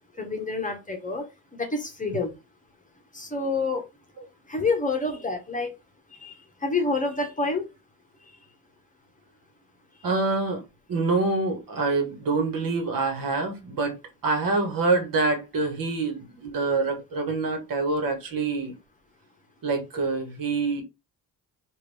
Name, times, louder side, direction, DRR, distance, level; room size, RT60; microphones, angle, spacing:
voice 1, 0.2-2.3 3.1-3.8 4.5-5.7 6.1-7.7, left 3 dB, 20° left, 1.0 m, -28 dB
voice 2, 10.0-10.6 10.9-13.9 14.2-18.7 19.6-20.8, right 3 dB, 60° right, 1.4 m, -26 dB
3.6 x 2.6 x 3.3 m
cardioid pair, 100°, 38 cm